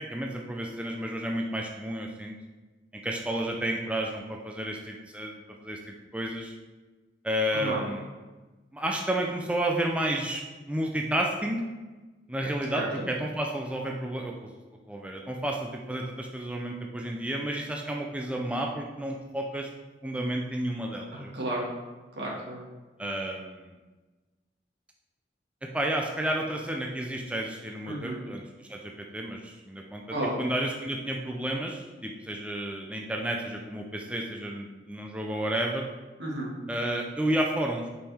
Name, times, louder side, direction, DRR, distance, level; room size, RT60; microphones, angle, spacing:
voice 1, 0.0-2.3 3.0-6.5 7.2-8.0 8.7-11.6 12.3-14.5 14.9-19.7 20.0-21.3 23.0-23.7 25.6-30.0 30.4-35.9 36.7-37.9, right 1 dB, 5° right, 1 dB, 0.4 m, -31 dB
voice 2, 12.7-13.1 21.1-21.7 22.1-22.6 27.9-28.2 30.1-30.4 36.2-36.5, right 1 dB, 75° right, -4 dB, 2.1 m, -32 dB
7.2 x 5.3 x 3.5 m, 1.2 s
head